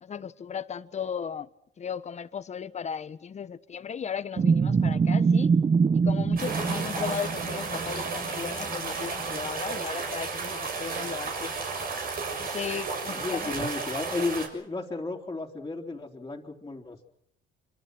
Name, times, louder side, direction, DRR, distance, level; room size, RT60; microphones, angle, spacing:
voice 1, 0.0-1.5 1.8-5.5 5.9-11.5 12.4-13.8 14.0-14.1, left 7 dB, 35° left, 1.3 m, -36 dB
sound 1, 4.4-9.1 9.4-9.5 13.5-13.7, right 5 dB, 30° right, 0.9 m, -25 dB
sound 2, 6.4-14.5, right 4 dB, 50° right, 6.6 m, -33 dB
voice 2, 13.1-17.0, left 3 dB, 15° left, 3.6 m, -33 dB
27.0 x 25.5 x 6.4 m
cardioid pair, 110°, 20 cm